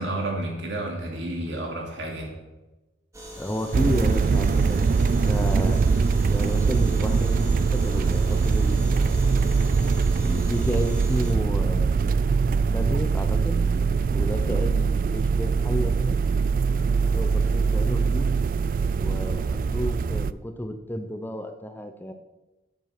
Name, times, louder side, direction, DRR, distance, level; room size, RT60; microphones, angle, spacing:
voice 1, 0.0-2.3, right 1 dB, 85° right, 1 dB, 2.9 m, -30 dB
sound 1, 3.1-11.3, equal, 15° right, 2.2 m, -41 dB
voice 2, 3.4-5.8 6.3-9.2 10.2-12.1 12.7-13.6 14.1-16.2 17.1-18.3 19.0-22.1, equal, 10° left, 7 dB, 0.7 m, -32 dB
sound 2, 3.7-20.3, right 5 dB, 50° right, 0.3 m, -22 dB
9.0 x 8.3 x 6.0 m, 1.1 s
head